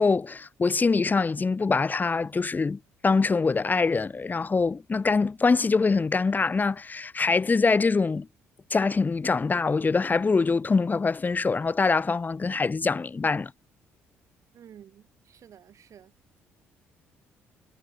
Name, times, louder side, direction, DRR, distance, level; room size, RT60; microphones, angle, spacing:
voice 1, 0.0-8.3 8.7-13.5, left 4 dB, 25° left, 1.1 m, -24 dB
voice 2, 14.5-16.1, right 9 dB, 50° right, 4.5 m, -51 dB
figure-of-eight pair, 45°, 7 cm